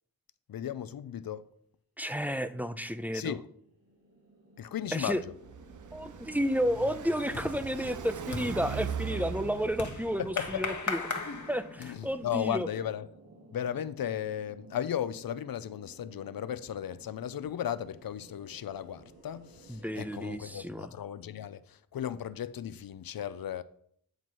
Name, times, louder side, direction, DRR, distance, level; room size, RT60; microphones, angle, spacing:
voice 1, 0.5-1.5 3.1-3.5 4.6-5.3 10.2-10.6 11.8-13.1 13.5-23.6, left 10 dB, 70° left, 0.5 m, -35 dB
voice 2, 2.0-3.4 4.9-5.2 5.9-12.7 19.7-20.9, equal, 5° right, 0.5 m, -32 dB
sound 1, 3.3-20.6, right 1 dB, 80° right, 3.2 m, -55 dB
Car passing by, 5.1-10.6, right 7 dB, 55° right, 0.5 m, -40 dB
sound 2, 5.7-6.1 6.4-12.2, left 4 dB, 50° left, 1.2 m, -39 dB
9.2 x 4.0 x 4.6 m
cardioid pair, 50°, 37 cm